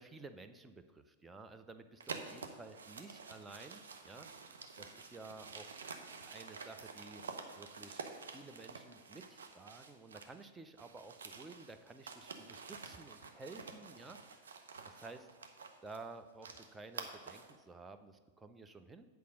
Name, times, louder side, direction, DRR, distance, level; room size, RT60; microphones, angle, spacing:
voice 1, 0.0-4.3 4.8-5.7 6.2-7.2 7.5-15.3 15.8-19.1, right 3 dB, 10° right, 7 dB, 0.6 m, -53 dB
sound 1, 2.0-10.4 10.7-17.6, right 5 dB, 70° right, 0.8 m, -49 dB
8.4 x 4.6 x 6.3 m, 1.4 s
figure-of-eight pair, 95°, 0 cm